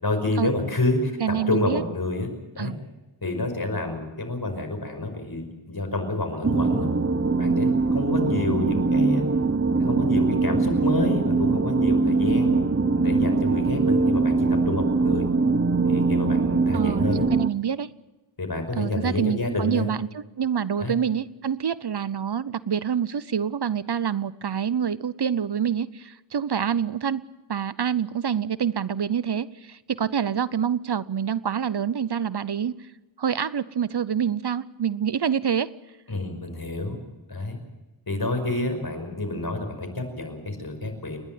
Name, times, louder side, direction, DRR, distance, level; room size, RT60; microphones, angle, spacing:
voice 1, 0.0-2.3 2.6-2.7 3.2-6.9 7.4-9.2 9.8-12.6 12.9-15.3 15.8-17.3 18.4-19.9 20.8-20.9 36.1-37.0 37.3-37.6 38.1-41.2, left 2 dB, 50° left, 5 dB, 5.6 m, -28 dB
voice 2, 1.2-1.8 2.6-2.8 16.7-17.9 18.8-27.2 27.5-32.9 33.2-35.7, right 8 dB, 55° right, 17 dB, 0.7 m, -26 dB
sound 1, 6.4-17.5, right 3 dB, 30° right, 0.9 m, -22 dB
29.5 x 11.5 x 9.3 m, 1.1 s
wide cardioid pair, 65°, 47 cm